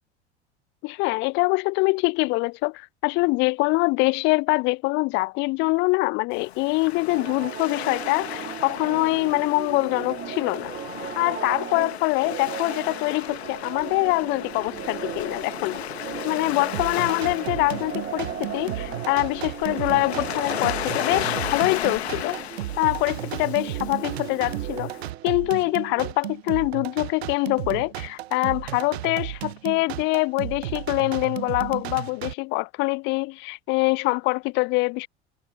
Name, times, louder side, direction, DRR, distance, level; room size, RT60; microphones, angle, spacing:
voice 1, 0.8-10.7 11.2-15.8 16.2-22.4 22.8-24.9 25.2-35.1, left 26 dB, 35° left, 0.5 m, -24 dB
Waves surf, 6.3-25.1, left 12 dB, 65° left, 2.1 m, -35 dB
sound 1, 7.1-26.1, right 10 dB, 30° right, 2.4 m, -37 dB
sound 2, 16.7-32.3, right 15 dB, 65° right, 0.6 m, -34 dB
figure-of-eight pair, 75°, 34 cm